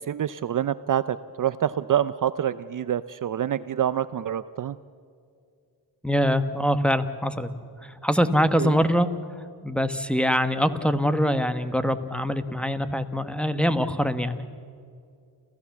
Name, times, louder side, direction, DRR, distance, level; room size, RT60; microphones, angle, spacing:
voice 1, 0.1-4.8 8.6-8.8, right 10 dB, 50° right, 15 dB, 0.6 m, -26 dB
voice 2, 6.0-7.5 7.8-9.1 9.6-14.4, equal, 5° left, 11 dB, 1.2 m, -24 dB
29.0 x 14.5 x 7.2 m, 2.4 s
cardioid pair, 75°, 42 cm